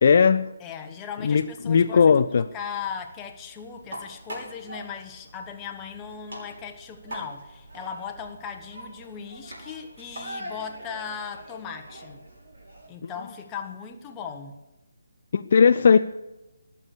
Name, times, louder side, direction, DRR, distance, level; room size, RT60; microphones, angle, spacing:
voice 1, 0.0-0.5 1.2-2.5 13.0-13.1 15.3-16.0, left 6 dB, 40° left, 10 dB, 0.4 m, -18 dB
voice 2, 0.6-12.2 12.9-14.5, left 7 dB, 15° left, 4 dB, 1.2 m, -38 dB
sound 1, 1.4-12.9, right 1 dB, 55° right, 6.2 m, -43 dB
20.0 x 6.9 x 8.3 m, 1.0 s
figure-of-eight pair, 145°, 0 cm